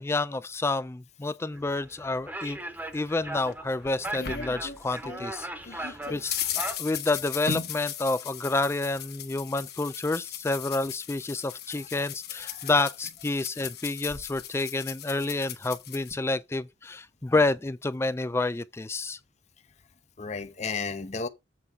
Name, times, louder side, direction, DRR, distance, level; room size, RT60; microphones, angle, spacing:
voice 1, 0.0-2.6 2.9-19.2, left 2 dB, 15° left, 0.3 m, -29 dB
sound 1, 1.5-6.7, right 1 dB, 10° right, 1.0 m, -38 dB
sound 2, 3.4-5.3 5.6-16.1, left 8 dB, 60° left, 1.4 m, -37 dB
voice 2, 12.4-12.7 20.2-21.3, left 4 dB, 40° left, 0.7 m, -34 dB
7.7 x 3.5 x 6.1 m
head